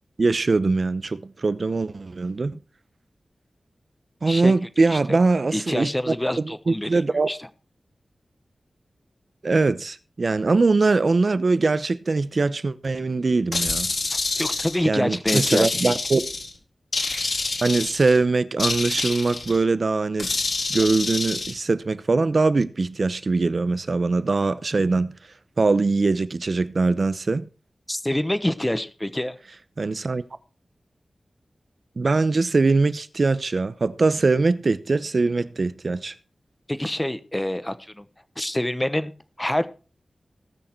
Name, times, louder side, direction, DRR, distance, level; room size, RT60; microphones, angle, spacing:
voice 1, 0.2-2.6 4.2-7.3 9.4-13.9 14.8-16.2 17.6-20.3 20.7-25.1 25.6-27.5 29.8-30.2 32.0-36.1, right 3 dB, 55° right, 0.8 m, -22 dB
voice 2, 4.8-5.2 5.5-7.4 14.1-15.9 27.9-29.4 36.7-38.1 38.4-39.1 39.4-39.7, left 1 dB, 10° left, 1.1 m, -26 dB
sound 1, 13.5-14.8 15.3-16.5 16.9-18.2 18.6-19.6 20.2-21.5, left 3 dB, 65° left, 4.0 m, -27 dB
19.0 x 6.5 x 4.6 m
wide cardioid pair, 85°, 0 cm